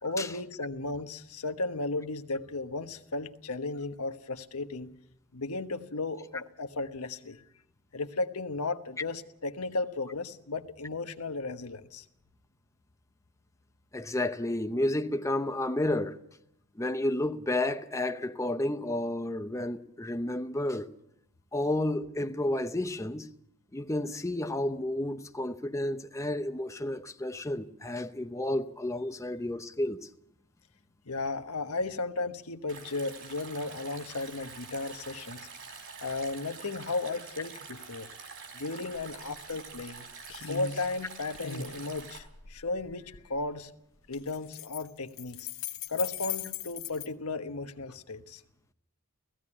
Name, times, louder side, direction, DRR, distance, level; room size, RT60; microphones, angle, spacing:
voice 1, 0.0-4.9 5.3-7.4 7.9-12.1 31.1-35.4 36.0-38.1 38.5-40.0 40.5-43.7 44.1-45.5 45.9-48.4, left 3 dB, 80° left, 1.2 m, -35 dB
voice 2, 13.9-16.2 16.8-20.9 21.5-23.3 23.7-30.1, left 1 dB, 15° left, 0.7 m, -31 dB
Stream, 32.7-42.2, right 5 dB, 60° right, 4.3 m, -46 dB
sound 1, 38.9-39.1 39.5-40.0 40.3-40.9 41.3-43.3 44.1-47.1, left 9 dB, 65° left, 1.3 m, -39 dB
17.0 x 15.5 x 9.9 m
head